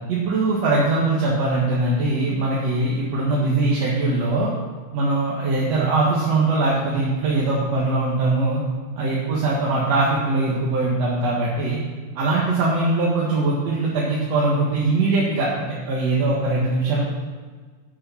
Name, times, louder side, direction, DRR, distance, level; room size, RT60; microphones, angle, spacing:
voice 1, 0.1-4.5 4.9-8.6 9.0-11.8 12.2-17.0, right 2 dB, 50° right, -5 dB, 2.4 m, -21 dB
11.0 x 8.8 x 5.7 m, 1.5 s
omnidirectional pair, 4.3 m